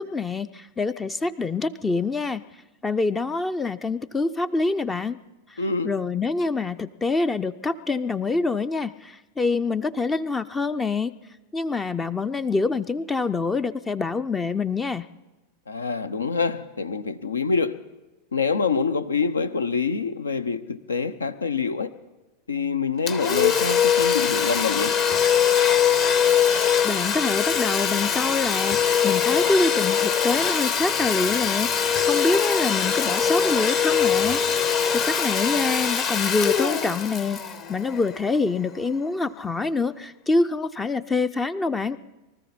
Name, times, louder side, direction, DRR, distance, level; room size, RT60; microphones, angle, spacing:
voice 1, 0.0-2.4 2.8-5.2 5.5-11.1 11.5-15.0 26.8-37.4 37.7-42.0, left 3 dB, 15° left, 0.5 m, -26 dB
voice 2, 5.6-5.9 15.7-17.8 18.3-21.9 22.5-24.9, left 5 dB, 75° left, 0.8 m, -25 dB
Domestic sounds home sounds, 23.1-38.5, left 7 dB, 40° left, 1.4 m, -22 dB
24.0 x 13.5 x 4.2 m
figure-of-eight pair, 90°, 0 cm